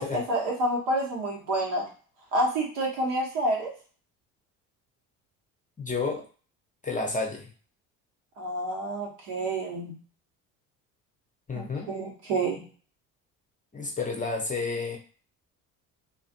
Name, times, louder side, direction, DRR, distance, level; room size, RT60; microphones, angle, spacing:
voice 1, 0.0-1.9 2.3-3.7 8.4-9.9 11.5-12.6, right 1 dB, 75° right, -2 dB, 1.2 m, -28 dB
voice 2, 5.8-6.2 6.8-7.5 11.5-11.9 13.7-15.0, left 4 dB, 20° left, 1 dB, 0.6 m, -31 dB
2.5 x 2.4 x 2.5 m, 0.39 s
hypercardioid pair, 65°, 42 cm